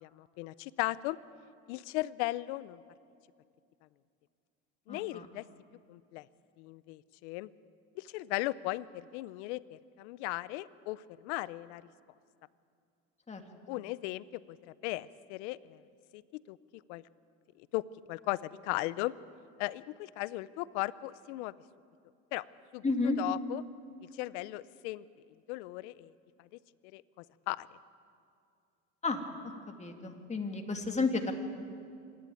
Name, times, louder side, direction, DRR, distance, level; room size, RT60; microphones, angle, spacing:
voice 1, 0.0-1.2 1.7-2.8 4.9-5.4 5.9-6.3 6.6-7.5 8.0-11.8 13.7-14.6 14.8-15.8 16.1-16.6 16.9-17.0 17.6-17.8 18.1-19.1 19.6-21.5 22.3-22.4 22.7-22.8 23.2-23.6 24.1-25.0 25.5-26.1 26.9-27.0 27.5-27.7, left 19 dB, 80° left, 19 dB, 0.7 m, -37 dB
voice 2, 4.9-5.3 13.3-13.4 13.7-13.8 22.8-23.2 29.0-29.2 29.7-31.3, left 3 dB, 20° left, 4 dB, 2.4 m, -32 dB
26.0 x 11.5 x 9.2 m, 2.4 s
supercardioid pair, 95°, 34 cm